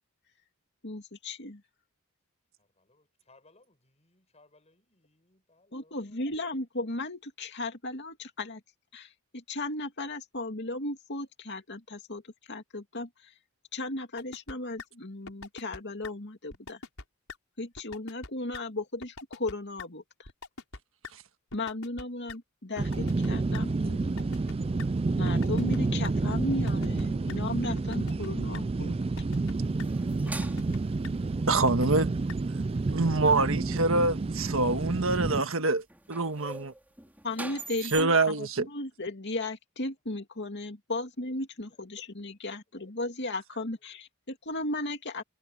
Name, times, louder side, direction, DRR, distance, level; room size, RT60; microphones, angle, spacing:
voice 1, 0.8-1.6 5.7-8.6 8.9-12.2 12.5-13.3 13.7-16.8 17.6-20.3 21.5-24.1 25.2-29.0 37.2-45.2, left 2 dB, 50° left, 2.6 m, -36 dB
voice 2, 2.6-6.2, left 2 dB, 30° left, 7.9 m, -63 dB
sound 1, 14.2-14.5 14.8-14.9 15.3-15.8 16.0-16.1 16.5-17.0 17.3-17.4 17.8-18.3 18.5-18.6 19.0-19.5 19.8-19.9 20.3-20.8 21.0-21.1 21.5-22.0 22.3-22.4 22.8-23.6 24.0-24.9 25.3-25.8 26.0-26.1 26.5-27.0 27.3-27.4 27.8-28.3 28.5-28.6 29.0-29.5 29.8-29.9 30.3-30.8 31.0-31.1 31.5-32.0 32.3-32.4 32.8-32.9, left 3 dB, 65° left, 5.3 m, -42 dB
sound 2, 22.8-35.4, right 3 dB, 25° right, 0.3 m, -29 dB
sound 3, 29.6-31.0 34.7-34.8 35.9-38.0, right 2 dB, 10° right, 3.3 m, -42 dB
voice 3, 31.5-32.1 32.9-36.7 37.8-38.7, right 3 dB, 60° right, 1.6 m, -26 dB
head